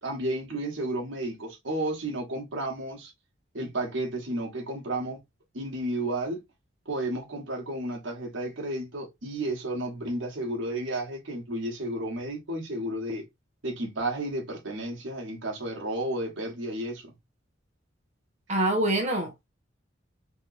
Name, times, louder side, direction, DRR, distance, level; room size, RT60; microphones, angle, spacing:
voice 1, 0.0-3.1 3.5-5.2 5.5-6.4 6.8-13.2 13.6-17.1, right 1 dB, 75° right, 1.4 m, -32 dB
voice 2, 18.5-19.5, right 1 dB, 35° right, 1.0 m, -25 dB
3.4 x 3.0 x 2.5 m
head